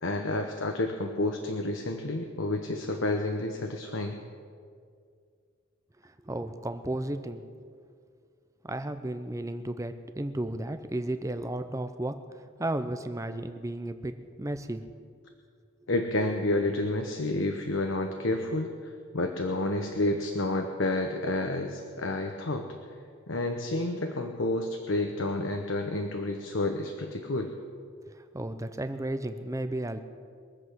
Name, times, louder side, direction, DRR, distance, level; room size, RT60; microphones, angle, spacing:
voice 1, 0.0-4.2 15.9-22.8 23.3-27.5, left 2 dB, 60° left, 4 dB, 0.9 m, -30 dB
voice 2, 6.3-7.5 8.6-14.8 28.3-30.0, right 1 dB, 15° right, 9 dB, 0.6 m, -33 dB
23.0 x 7.9 x 6.2 m, 2.2 s
head